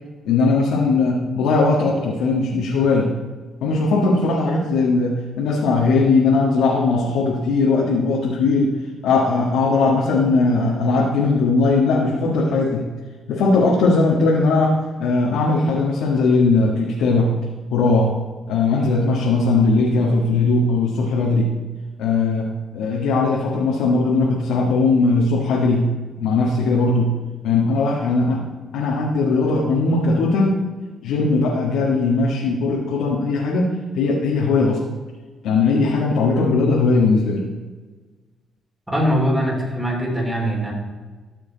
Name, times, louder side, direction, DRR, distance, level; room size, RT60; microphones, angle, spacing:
voice 1, 0.2-3.1 3.6-8.7 9.0-12.9 13.3-17.3 17.7-18.1 18.5-21.5 22.0-25.9 26.2-27.1 27.4-28.4 28.7-30.6 31.0-34.8 35.4-37.4, left 3 dB, 85° left, -3 dB, 1.7 m, -19 dB
voice 2, 38.9-40.7, equal, 10° right, -1 dB, 3.8 m, -21 dB
14.5 x 6.9 x 4.1 m, 1.4 s
cardioid pair, 90°, 0 cm